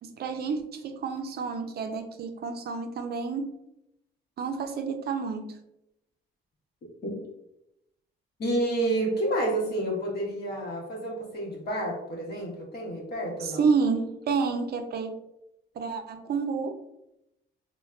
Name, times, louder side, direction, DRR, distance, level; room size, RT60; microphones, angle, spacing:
voice 1, 0.0-3.6 4.4-5.6 13.4-15.2 15.8-16.8, right 5 dB, 55° right, 7 dB, 0.4 m, -29 dB
voice 2, 8.4-13.6, right 1 dB, 55° left, -1 dB, 0.9 m, -29 dB
3.3 x 2.1 x 2.3 m, 0.84 s
cardioid pair, 90°, 20 cm